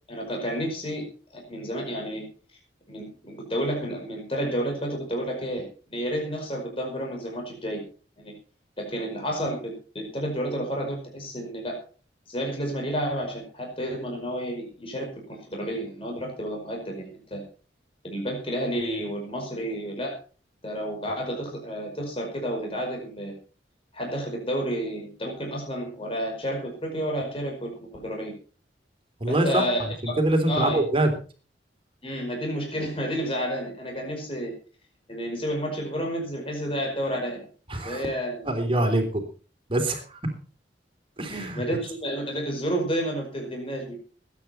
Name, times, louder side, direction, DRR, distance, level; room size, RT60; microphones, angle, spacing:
voice 1, 0.1-1.0 1.3-2.2 2.9-7.8 8.2-8.3 8.8-11.8 12.3-17.4 18.0-20.2 20.6-23.3 23.9-28.3 29.3-30.2 30.5-30.8 32.0-34.5 35.1-37.4 37.8-38.5 41.3-43.9, equal, 30° left, 1 dB, 5.2 m, -30 dB
voice 2, 29.2-29.6 30.0-31.1 37.7-38.0 38.5-39.0 39.7-40.0 41.2-41.6, right 1 dB, 30° right, 4 dB, 3.4 m, -24 dB
20.5 x 9.7 x 4.4 m, 0.38 s
head